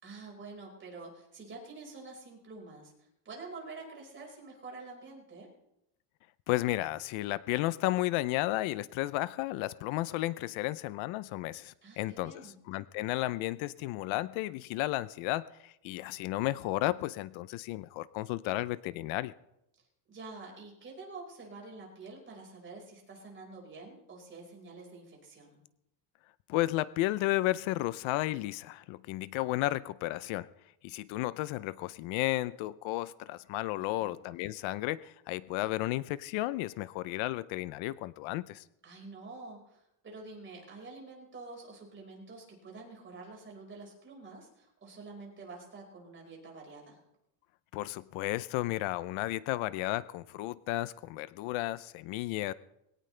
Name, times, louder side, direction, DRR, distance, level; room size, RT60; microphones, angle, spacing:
voice 1, 0.0-5.5 11.8-12.6 20.1-25.6 34.0-34.2 38.8-47.0, right 3 dB, 25° right, 0 dB, 5.0 m, -48 dB
voice 2, 6.5-19.3 26.5-30.5 30.8-38.6 47.7-52.5, left 17 dB, 75° left, 17 dB, 0.7 m, -33 dB
21.5 x 17.5 x 3.3 m, 0.83 s
cardioid pair, 170°, 47 cm